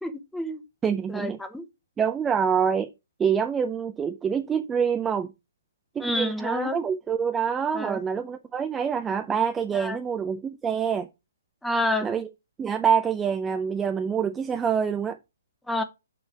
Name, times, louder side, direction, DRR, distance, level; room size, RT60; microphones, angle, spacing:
voice 1, 0.0-0.6 1.1-1.7 6.0-6.8 7.7-8.0 9.7-10.0 11.6-12.1 15.7-15.8, left 1 dB, 5° left, 1.0 m, -28 dB
voice 2, 0.8-1.4 2.0-2.9 3.2-5.3 6.0-11.1 12.0-12.3 12.6-15.2, right 7 dB, 15° right, 0.5 m, -26 dB
6.8 x 5.5 x 4.6 m
figure-of-eight pair, 130°, 0 cm